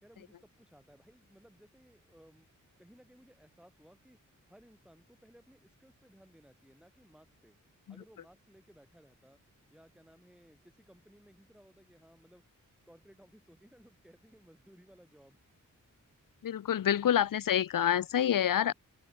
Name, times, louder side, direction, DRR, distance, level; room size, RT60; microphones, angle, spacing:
voice 1, 0.0-2.5 2.8-4.2 4.5-7.6 7.9-9.4 9.7-12.4 12.9-15.4, equal, ahead, 4.6 m, -60 dB
voice 2, 16.4-18.7, left 10 dB, 85° left, 0.8 m, -27 dB
wide cardioid pair, 145°, 32 cm